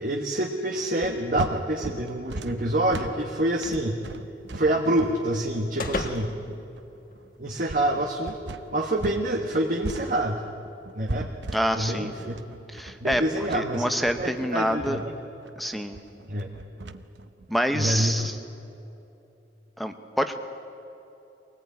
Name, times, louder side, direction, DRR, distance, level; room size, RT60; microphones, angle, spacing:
voice 1, 0.0-4.0 4.5-6.3 7.4-8.4 8.7-10.4 10.9-11.3 11.7-12.3 13.0-13.9 14.2-15.1 16.3-16.5 17.7-18.3, right 1 dB, 45° right, 1 dB, 1.5 m, -26 dB
sound 1, 1.0-9.3 9.5-18.3, right 2 dB, 75° right, 0.9 m, -38 dB
sound 2, 3.2-7.6, left 2 dB, 50° left, 1.5 m, -39 dB
voice 2, 11.5-12.1 12.7-15.0 15.6-16.0 17.5-18.4 19.8-20.4, equal, ahead, 7 dB, 0.9 m, -27 dB
24.0 x 18.5 x 9.5 m, 3.0 s
head